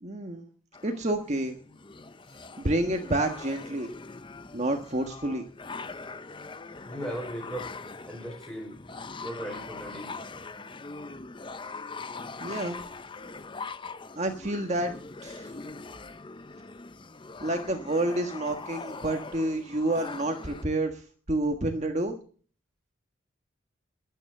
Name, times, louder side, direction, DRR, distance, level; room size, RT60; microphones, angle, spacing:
voice 1, 0.0-0.5 0.8-1.6 2.6-3.9 4.5-5.4 12.4-12.8 14.1-14.9 15.2-15.5 17.4-22.2, right 1 dB, 35° right, 4 dB, 1.5 m, -29 dB
sound 1, 0.7-20.6, left 4 dB, 25° left, 0.6 m, -42 dB
voice 2, 6.9-7.7 8.1-10.3, right 1 dB, 5° left, 3 dB, 5.2 m, -38 dB
22.5 x 9.2 x 6.7 m, 0.43 s
head